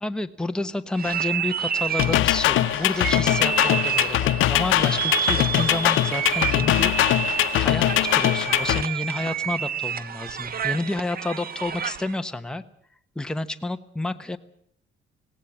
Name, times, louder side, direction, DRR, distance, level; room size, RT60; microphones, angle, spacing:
voice 1, 0.0-6.9 7.6-12.6 13.1-14.4, left 2 dB, 5° left, 7 dB, 1.1 m, -30 dB
sound 1, 1.0-12.2, right 9 dB, 50° right, 1.1 m, -29 dB
sound 2, 2.0-8.8, left 14 dB, 85° left, 0.8 m, -22 dB
18.5 x 17.5 x 8.6 m, 0.68 s
cardioid pair, 90°, 20 cm